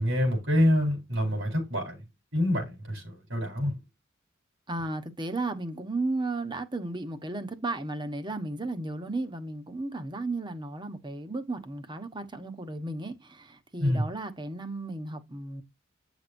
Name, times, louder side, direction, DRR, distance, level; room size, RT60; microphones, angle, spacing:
voice 1, 0.0-2.0 2.3-3.7 13.8-14.0, left 1 dB, 80° right, 4.5 m, -26 dB
voice 2, 4.7-15.6, right 2 dB, 25° right, 1.2 m, -34 dB
9.3 x 6.1 x 2.7 m
head